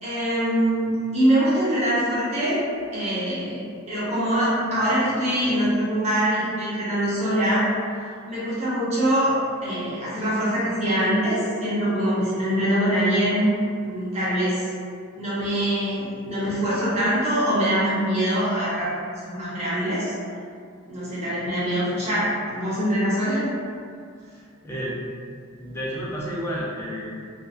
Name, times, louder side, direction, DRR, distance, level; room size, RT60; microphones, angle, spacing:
voice 1, 0.0-2.6 2.9-7.7 8.3-9.4 9.6-14.7 15.2-18.9 19.2-20.1 20.9-23.5, equal, 30° right, -11 dB, 1.0 m, -23 dB
voice 2, 24.2-25.0 25.6-27.1, equal, 10° left, -6 dB, 0.4 m, -31 dB
3.1 x 2.2 x 2.5 m, 2.2 s
head